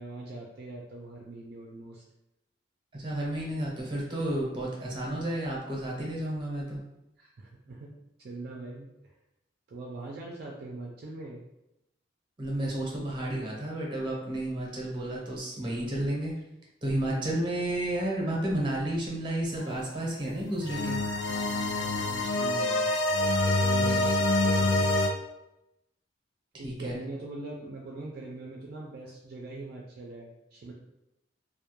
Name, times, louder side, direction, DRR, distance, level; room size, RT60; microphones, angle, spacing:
voice 1, 0.0-2.0 7.2-9.1 9.7-11.4 21.3-22.8 23.6-24.7 26.6-30.7, right 2 dB, 55° right, -2 dB, 0.4 m, -42 dB
voice 2, 2.9-6.8 12.4-16.3 16.8-21.0 23.9-24.1 24.4-24.9 26.5-27.0, right 1 dB, 25° right, -3 dB, 0.7 m, -32 dB
sound 1, 19.6-19.7 20.6-25.1, left 2 dB, 80° left, 0.4 m, -26 dB
2.2 x 2.1 x 2.9 m, 0.89 s
head